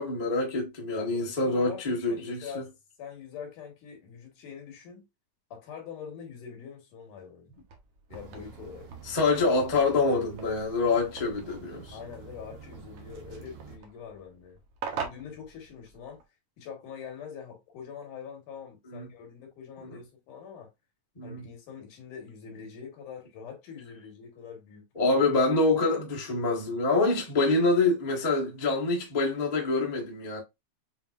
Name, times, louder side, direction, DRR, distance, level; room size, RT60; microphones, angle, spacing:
voice 1, 0.0-2.5 9.0-12.0 18.9-19.1 19.8-20.0 21.2-21.4 24.9-30.4, left 3 dB, 60° left, 0.4 m, -26 dB
voice 2, 1.0-2.7 3.0-5.1 5.5-7.5 8.1-8.9 11.9-14.6 14.9-16.2 16.6-20.7 21.2-25.2, left 7 dB, 85° left, 3.1 m, -44 dB
sound 1, 7.5-16.2, right 6 dB, 65° right, 1.6 m, -44 dB
sound 2, 8.1-13.8, right 6 dB, 85° right, 2.5 m, -48 dB
7.0 x 2.8 x 2.5 m
omnidirectional pair, 3.5 m